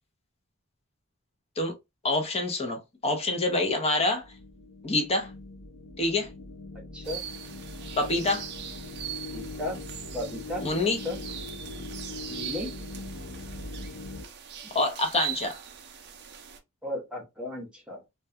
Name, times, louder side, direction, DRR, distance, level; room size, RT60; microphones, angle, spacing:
voice 1, 2.0-4.2 4.8-5.3 6.0-6.3 8.0-8.5 10.6-11.0 14.7-15.6, left 2 dB, 30° left, 0.6 m, -26 dB
sound 1, 4.1-14.2, left 3 dB, 75° left, 0.5 m, -41 dB
sound 2, 7.0-16.6, right 9 dB, 50° right, 0.4 m, -41 dB
voice 2, 9.3-9.8 10.1-10.6 11.0-11.2 12.3-12.7 16.8-18.0, left 1 dB, 5° right, 0.8 m, -34 dB
2.2 x 2.2 x 2.6 m
head